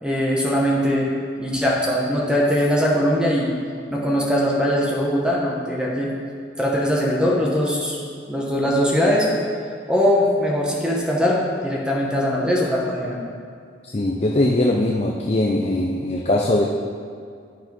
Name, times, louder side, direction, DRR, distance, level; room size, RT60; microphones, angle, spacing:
voice 1, 0.0-1.1 1.4-3.5 3.9-6.1 6.6-8.0 8.3-9.3 9.9-13.2, equal, 5° right, -3 dB, 1.1 m, -21 dB
voice 2, 13.9-16.6, left 1 dB, 35° left, 0 dB, 0.6 m, -20 dB
10.0 x 6.2 x 5.2 m, 2.2 s
head